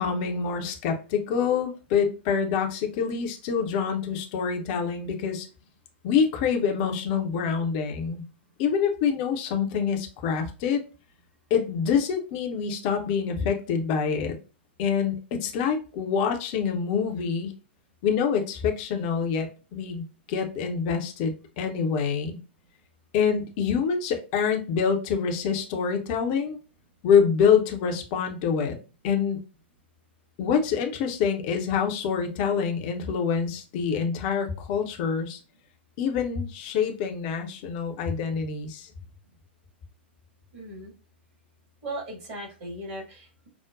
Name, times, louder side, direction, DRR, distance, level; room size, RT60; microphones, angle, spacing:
voice 1, 0.0-5.5 6.0-8.2 8.6-10.8 11.5-14.4 14.8-17.5 18.0-22.4 23.1-26.6 27.0-28.8 29.0-29.4 30.4-35.4 36.0-38.9, left 6 dB, 40° left, 0.7 m, -26 dB
voice 2, 40.5-40.9 41.8-43.5, right 1 dB, 45° right, 1.8 m, -37 dB
5.9 x 2.1 x 2.4 m
figure-of-eight pair, 100°, 6 cm